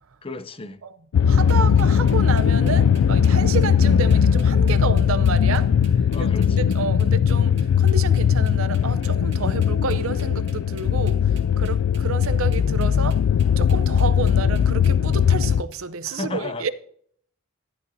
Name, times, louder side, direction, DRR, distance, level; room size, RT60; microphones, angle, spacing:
voice 1, 0.2-0.8 6.1-6.7 16.1-16.7, left 2 dB, 25° left, 0.5 m, -33 dB
sound 1, 1.1-15.6, left 7 dB, 90° left, 0.3 m, -19 dB
voice 2, 1.3-13.2 13.6-16.7, right 5 dB, 75° right, 0.7 m, -30 dB
sound 2, 1.5-15.8, right 8 dB, 55° right, 2.1 m, -49 dB
13.0 x 11.5 x 2.7 m
head